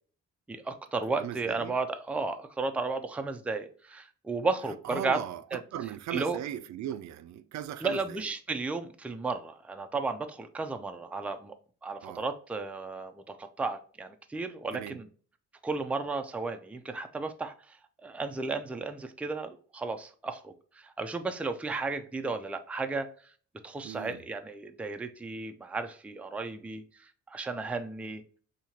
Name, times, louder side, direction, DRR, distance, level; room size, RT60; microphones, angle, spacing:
voice 1, 0.5-5.2 5.5-5.6 6.1-6.4 7.8-11.5 11.8-15.1 15.6-17.8 18.0-23.1 23.6-28.2, right 3 dB, 5° right, 0.4 m, -34 dB
voice 2, 1.2-1.8 4.8-8.2 12.0-12.2 14.7-15.0 23.8-24.2, right 11 dB, 65° right, 0.4 m, -38 dB
4.3 x 2.8 x 2.8 m
cardioid pair, 90°, 30 cm